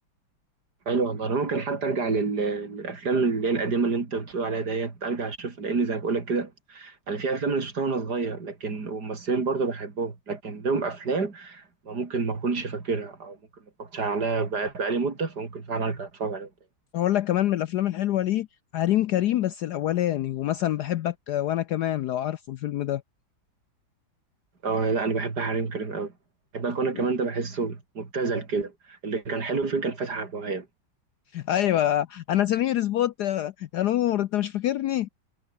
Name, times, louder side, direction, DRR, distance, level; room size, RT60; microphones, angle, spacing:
voice 1, 0.9-13.4 13.8-16.5 24.6-26.1 26.5-30.7, right 4 dB, 55° right, 3.6 m, -28 dB
voice 2, 16.9-18.5 18.7-23.0 26.9-27.0 31.3-35.1, left 12 dB, 70° left, 1.0 m, -25 dB
omnidirectional pair, 2.2 m